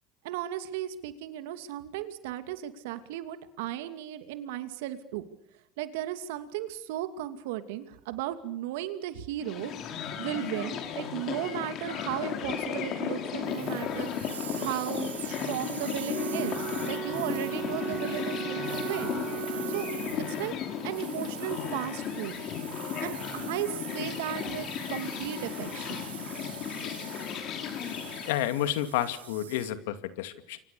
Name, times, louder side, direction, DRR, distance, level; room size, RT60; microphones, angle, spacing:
voice 1, 0.2-5.2 5.8-9.7 10.2-19.2 19.7-19.9 20.3-20.5 20.8-22.4 23.0-26.0, right 13 dB, 70° right, 10 dB, 2.6 m, -35 dB
sound 1, 9.4-28.4, left 8 dB, 50° left, 5.1 m, -35 dB
sound 2, 13.4-29.7, right 9 dB, 90° right, 1.8 m, -44 dB
Wind instrument woodwind instrument, 16.1-20.5, right 12 dB, 50° right, 1.1 m, -37 dB
voice 2, 28.3-30.6, left 12 dB, 75° left, 11 dB, 2.3 m, -30 dB
30.0 x 24.5 x 7.0 m, 0.77 s
hypercardioid pair, 80°, 0 cm